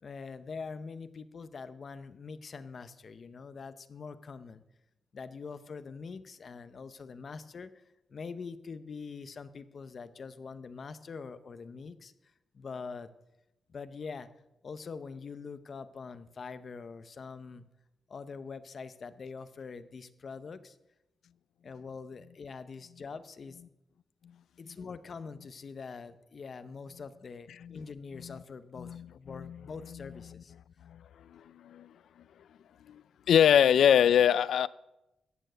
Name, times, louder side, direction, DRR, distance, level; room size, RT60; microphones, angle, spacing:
voice 1, 0.0-4.6 5.1-7.8 8.1-12.1 12.5-13.1 13.7-14.3 14.6-17.6 18.1-20.8 21.6-23.6 24.6-30.5, left 5 dB, 40° left, 0.7 m, -44 dB
voice 2, 28.8-29.6 30.9-31.0 31.3-31.9 32.9-33.0 33.3-34.7, left 9 dB, 85° left, 0.4 m, -24 dB
14.0 x 9.0 x 6.7 m
wide cardioid pair, 175°, 0 cm